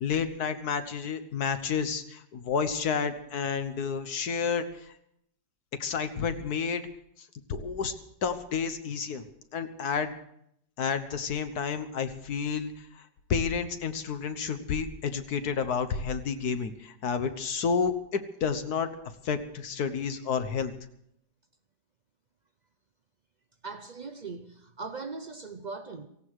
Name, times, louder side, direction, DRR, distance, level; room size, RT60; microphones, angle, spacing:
voice 1, 0.0-4.7 5.8-6.9 7.5-7.9 8.2-9.2 9.5-10.2 10.8-12.7 13.3-18.9 19.2-20.7, left 6 dB, 65° left, 1.5 m, -30 dB
voice 2, 23.6-26.1, right 4 dB, 75° right, 0.4 m, -39 dB
17.5 x 16.5 x 4.8 m
omnidirectional pair, 1.9 m